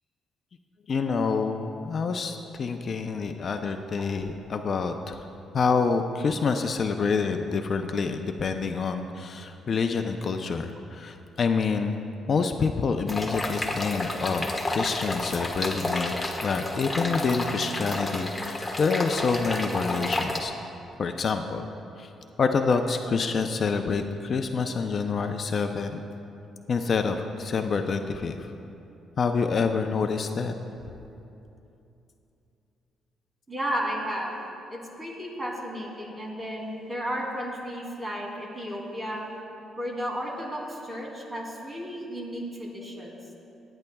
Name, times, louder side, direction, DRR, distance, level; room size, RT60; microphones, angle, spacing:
voice 1, 0.9-5.2 5.5-12.0 12.3-16.1 16.4-20.5 21.0-21.7 22.0-22.1 22.4-26.0 26.7-28.5 29.2-30.5, left 5 dB, 50° left, 6 dB, 0.6 m, -27 dB
sound 1, 13.1-20.4, left 1 dB, 10° left, 1.3 m, -31 dB
voice 2, 33.5-34.3 34.7-39.3 39.8-43.2, equal, 20° right, -2 dB, 2.9 m, -33 dB
25.5 x 9.9 x 2.3 m, 2.8 s
cardioid pair, 90°, 0 cm